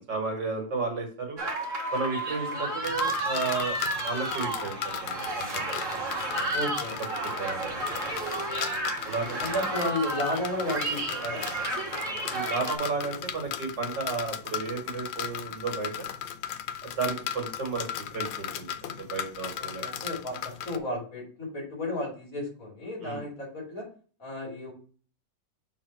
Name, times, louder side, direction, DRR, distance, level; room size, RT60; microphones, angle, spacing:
voice 1, 0.0-1.4 1.9-5.7 6.3-6.7 7.2-7.8 9.0-9.4 12.3-16.1 16.8-17.9 18.1-19.9 23.0-23.2, right 4 dB, 70° right, 2 dB, 2.3 m, -33 dB
sound 1, 1.4-12.8, right 2 dB, 45° right, 1.9 m, -32 dB
sound 2, 2.8-20.8, left 9 dB, 90° left, 1.3 m, -37 dB
voice 2, 6.5-7.0 9.2-11.5 19.6-23.9 24.2-24.7, left 1 dB, 45° left, -2 dB, 3.0 m, -33 dB
6.5 x 3.8 x 4.5 m, 0.40 s
omnidirectional pair, 2.0 m